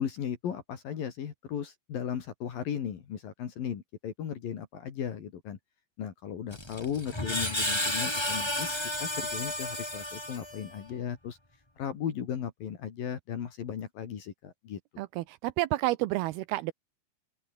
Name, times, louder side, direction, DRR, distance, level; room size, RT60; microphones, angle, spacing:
voice 1, 0.0-5.6 6.0-8.7 9.0-11.4 11.8-14.8, left 8 dB, 65° left, 4.1 m, -36 dB
Screech, 6.5-10.8, left 1 dB, 5° left, 3.4 m, -32 dB
voice 2, 15.0-16.7, right 17 dB, 85° right, 2.7 m, -30 dB
open air
omnidirectional pair, 4.5 m